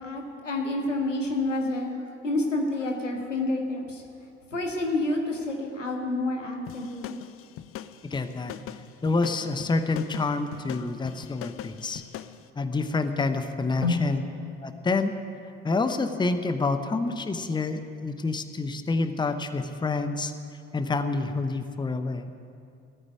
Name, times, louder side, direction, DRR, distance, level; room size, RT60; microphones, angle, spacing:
voice 1, 0.0-4.0 4.5-7.2 13.8-14.0, left 2 dB, 85° left, 2 dB, 1.6 m, -28 dB
sound 1, 6.7-12.4, left 11 dB, 40° left, 0.6 m, -41 dB
voice 2, 8.1-8.5 9.0-12.0 12.6-14.3 14.6-15.1 15.6-20.3 20.7-22.3, left 3 dB, 10° left, 9 dB, 0.9 m, -28 dB
15.0 x 9.4 x 9.5 m, 2.6 s
figure-of-eight pair, 55°, 37 cm